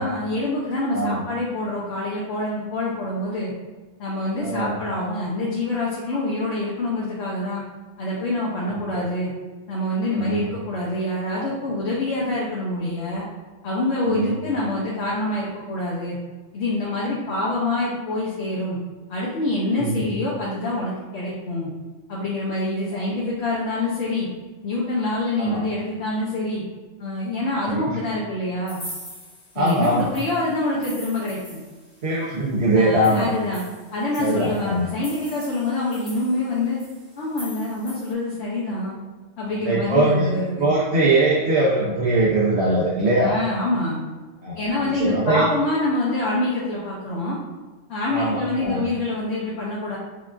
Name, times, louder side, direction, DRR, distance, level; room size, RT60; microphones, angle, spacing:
voice 1, 0.0-3.5 4.0-7.6 8.0-9.3 9.7-13.2 13.6-16.2 16.5-18.8 19.1-21.7 22.1-24.3 24.6-26.6 27.0-28.8 29.5-31.6 32.8-33.6 33.9-36.8 37.2-39.0 39.4-40.7 43.2-44.0 44.6-47.4 47.9-50.0, left 2 dB, 70° left, -5 dB, 0.9 m, -26 dB
voice 2, 4.4-4.7 8.7-8.8 10.2-10.4 14.1-14.3 19.8-20.0 25.4-25.6 27.6-28.0 29.5-30.1 32.0-33.3 34.2-34.9 39.4-40.3 40.6-43.4 44.4-45.5 48.1-48.8, right 2 dB, 70° right, -6 dB, 1.0 m, -21 dB
sound 1, 28.7-32.1 32.5-32.6 32.9-38.1, left 1 dB, 25° left, 1.1 m, -43 dB
5.4 x 2.4 x 2.4 m, 1.3 s
omnidirectional pair, 1.2 m